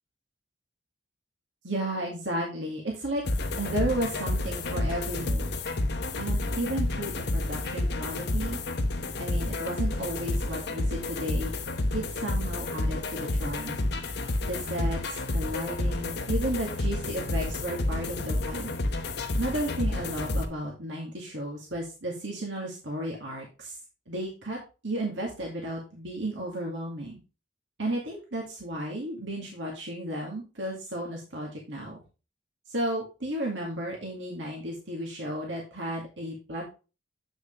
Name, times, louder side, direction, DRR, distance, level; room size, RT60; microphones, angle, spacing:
voice 1, 1.6-3.2 3.6-5.5 6.2-8.6 9.2-11.5 11.9-13.8 14.4-18.8 19.4-23.8 24.1-27.2 27.8-32.0 32.7-36.7, right 1 dB, 70° right, -2 dB, 2.2 m, -33 dB
sound 1, 3.3-20.5, left 2 dB, 65° left, 1.1 m, -30 dB
8.1 x 6.4 x 3.3 m, 0.31 s
head